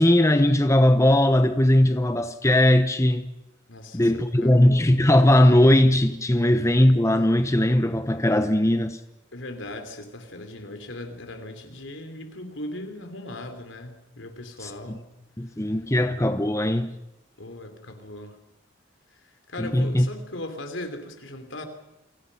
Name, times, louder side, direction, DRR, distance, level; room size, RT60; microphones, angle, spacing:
voice 1, 0.0-3.3 3.9-9.0 14.6-15.0 15.4-17.0 19.6-20.1, left 1 dB, 15° left, 0.9 m, -19 dB
voice 2, 3.7-4.1 4.4-4.8 9.3-15.0 17.4-18.4 19.2-21.6, left 1 dB, 75° left, 3.8 m, -38 dB
29.5 x 24.5 x 5.7 m
head